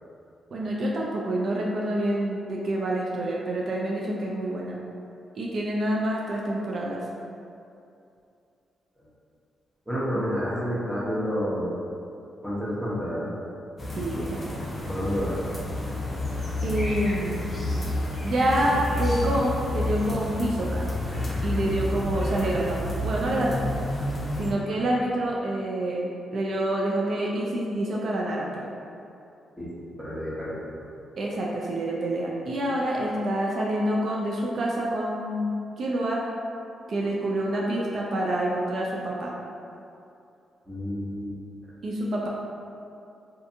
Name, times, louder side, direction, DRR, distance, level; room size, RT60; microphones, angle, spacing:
voice 1, 0.5-4.8 5.4-7.0 10.1-10.3 14.0-14.4 16.6-17.5 18.2-20.9 21.4-23.6 24.3-28.7 31.2-36.2 36.9-39.3 41.8-42.3, right 1 dB, 60° right, -3 dB, 0.3 m, -27 dB
voice 2, 9.9-11.7 12.4-13.3 14.9-15.3 29.6-29.7 30.0-30.6 40.7-41.4 41.6-41.7, equal, ahead, -9 dB, 0.9 m, -29 dB
sound 1, 13.8-24.5, left 1 dB, 30° left, 0.6 m, -30 dB
2.5 x 2.5 x 2.5 m, 2.6 s
cardioid pair, 70°, 0 cm